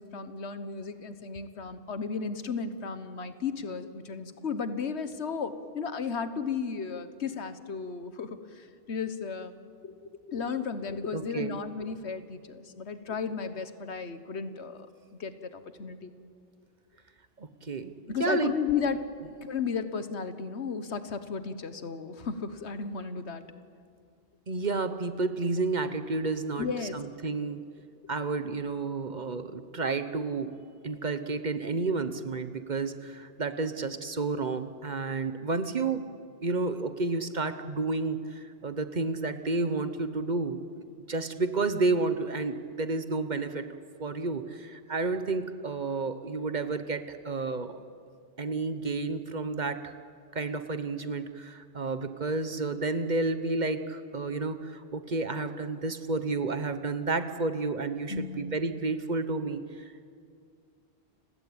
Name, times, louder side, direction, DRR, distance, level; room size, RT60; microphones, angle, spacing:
voice 1, 0.0-9.5 9.8-9.9 10.3-14.9 15.2-16.1 18.1-19.0 19.4-23.4 26.6-27.0 58.1-58.6, left 5 dB, 80° left, 11 dB, 1.5 m, -34 dB
voice 2, 11.1-11.5 17.4-17.9 18.2-18.5 24.5-26.7 26.9-27.6 28.1-30.5 30.8-36.1 36.4-40.6 41.1-43.7 44.0-47.8 48.4-49.9 50.3-59.6, right 3 dB, 45° right, 10 dB, 1.2 m, -31 dB
30.0 x 16.5 x 8.8 m, 2.3 s
omnidirectional pair, 1.1 m